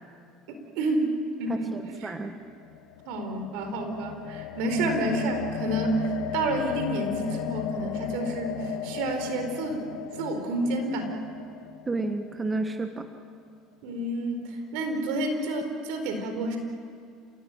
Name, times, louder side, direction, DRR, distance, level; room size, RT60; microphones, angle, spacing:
voice 1, 0.5-1.1 1.4-1.7 2.0-2.1 3.1-9.9 10.1-11.1 13.8-16.6, right 2 dB, 75° right, 6 dB, 4.2 m, -29 dB
voice 2, 1.5-2.4 11.9-13.1, right 3 dB, 20° right, 7 dB, 1.5 m, -31 dB
sound 1, 2.5-12.7, left 12 dB, 80° left, 1.1 m, -36 dB
29.0 x 17.0 x 9.1 m, 2.3 s
supercardioid pair, 90°, 0 cm